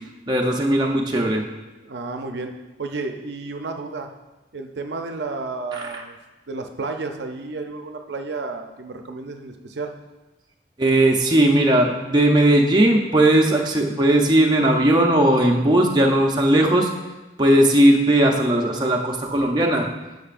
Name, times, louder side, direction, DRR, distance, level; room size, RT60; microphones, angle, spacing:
voice 1, 0.3-1.4 5.7-5.8 10.8-16.9 17.4-19.9, right 1 dB, 25° right, 0 dB, 0.6 m, -18 dB
voice 2, 1.8-4.1 4.5-6.2 6.5-10.0, right 3 dB, 70° right, 5 dB, 0.6 m, -32 dB
9.9 x 6.5 x 2.5 m, 1.1 s
head